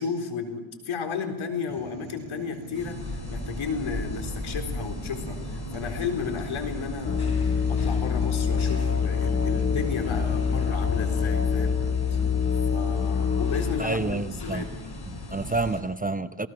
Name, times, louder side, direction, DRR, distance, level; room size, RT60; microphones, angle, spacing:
voice 1, 0.0-7.3 7.7-11.8 12.7-14.8, left 5 dB, 70° left, 5 dB, 4.1 m, -33 dB
sound 1, 1.7-10.7, right 5 dB, 75° right, 4.7 m, -44 dB
sound 2, 2.7-15.8, left 2 dB, 50° left, 6.2 m, -36 dB
Musical instrument, 7.1-13.8, left 6 dB, 30° left, 1.9 m, -25 dB
voice 2, 13.8-14.7 15.1-16.5, right 3 dB, 15° right, 11 dB, 0.8 m, -29 dB
28.0 x 18.5 x 6.3 m, 1.1 s
cardioid pair, 105°, 50 cm